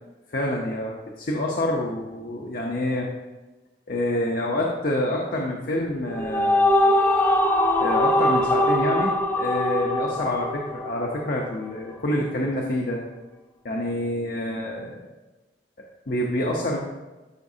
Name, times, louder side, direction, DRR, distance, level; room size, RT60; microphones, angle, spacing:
voice 1, 0.3-3.1 3.9-6.9 7.8-13.0 13.6-15.1 16.1-16.8, left 1 dB, 50° left, -1 dB, 0.8 m, -27 dB
sound 1, 5.9-11.4, left 1 dB, 10° left, 0.5 m, -22 dB
12.0 x 5.2 x 2.7 m, 1.2 s
head